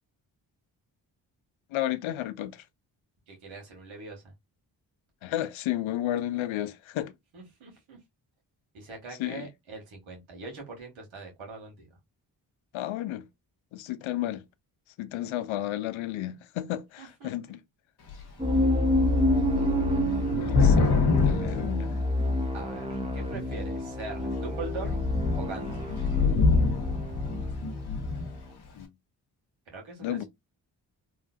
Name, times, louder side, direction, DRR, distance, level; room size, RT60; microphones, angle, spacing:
voice 1, 1.7-2.6 5.2-7.1 9.2-9.5 12.7-13.3 13.7-14.4 15.0-17.6 20.4-20.9 21.2-21.9 28.8-28.9 30.0-30.2, left 13 dB, 80° left, 0.5 m, -32 dB
voice 2, 3.3-4.2 7.3-8.0 8.7-11.9 17.0-17.3 22.5-25.0 25.4-26.0 29.7-30.2, right 3 dB, 85° right, 1.5 m, -42 dB
Thunder / Rain, 18.1-18.2 18.5-22.6 23.3-23.8 24.2-24.3 24.6-28.4, left 4 dB, 55° left, 1.1 m, -26 dB
sound 1, 18.4-28.4, equal, 15° right, 1.0 m, -29 dB
3.1 x 2.4 x 2.4 m
supercardioid pair, 45°, 46 cm